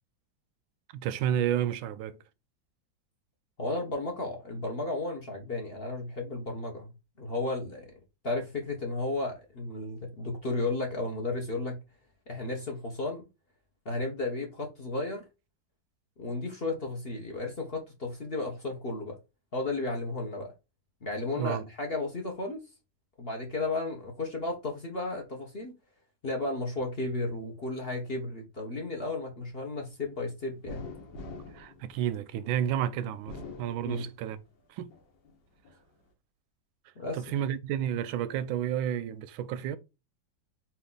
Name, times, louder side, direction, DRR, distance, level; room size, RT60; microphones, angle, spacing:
voice 1, 0.9-2.2 21.4-21.7 31.5-34.4 34.7-35.0 37.1-39.8, right 10 dB, 90° right, 1.4 m, -31 dB
voice 2, 3.6-6.9 7.2-7.8 8.2-11.8 12.3-13.2 13.8-15.2 16.2-19.1 19.5-20.5 21.0-22.6 23.2-25.7 26.2-30.9 33.8-34.1 37.0-37.2, left 2 dB, 35° left, 1.1 m, -33 dB
sound 1, 30.7-32.6 33.1-34.5 34.9-35.8, left 3 dB, 65° left, 1.8 m, -45 dB
4.3 x 2.9 x 3.8 m
omnidirectional pair, 2.1 m